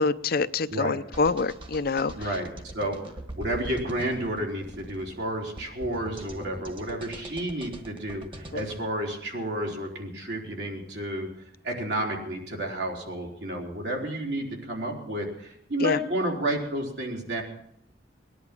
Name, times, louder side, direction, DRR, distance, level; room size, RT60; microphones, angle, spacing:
voice 1, 0.0-2.3 8.5-8.6 15.8-16.0, left 4 dB, 55° left, 0.6 m, -26 dB
sound 1, 1.1-8.8, right 1 dB, 30° right, 1.6 m, -42 dB
voice 2, 2.2-11.3 11.6-17.4, right 1 dB, 65° right, 3.9 m, -31 dB
19.5 x 11.0 x 6.0 m
head